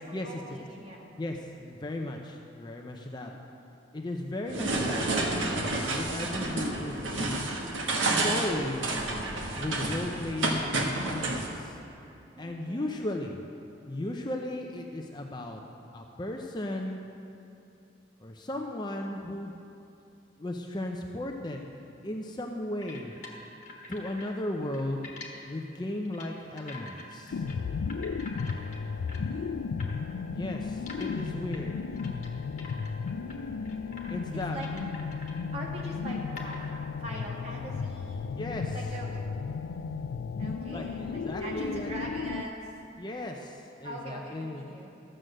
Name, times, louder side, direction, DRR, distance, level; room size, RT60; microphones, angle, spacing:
voice 1, 0.0-1.0 3.2-3.4 12.4-13.1 29.2-29.6 34.3-34.7 35.5-36.6 37.0-38.3 38.7-39.2 40.4-42.7 43.8-44.9, right 1 dB, 35° right, -3 dB, 1.9 m, -42 dB
voice 2, 1.2-3.3 3.9-5.1 5.8-7.4 7.9-8.9 9.6-11.8 12.4-13.4 13.9-15.6 15.9-17.0 18.2-19.5 20.4-21.7 22.0-23.2 23.9-25.1 25.5-27.5 30.3-31.8 34.1-34.6 38.4-38.8 40.7-41.9 43.0-44.6, left 1 dB, 20° left, 2 dB, 0.5 m, -35 dB
sound 1, 4.5-11.5, right 2 dB, 90° right, 1.3 m, -30 dB
sound 2, 22.8-24.3 24.6-25.3 25.9-26.3 26.6-27.6 27.9-29.3 29.8-29.9 30.5-33.4 33.7-34.1 34.4-35.4 35.8-35.9 36.3-36.7, left 3 dB, 40° left, 1.6 m, -45 dB
sound 3, 27.3-42.4, left 5 dB, 85° left, 0.4 m, -34 dB
13.0 x 7.7 x 6.4 m, 2.7 s
head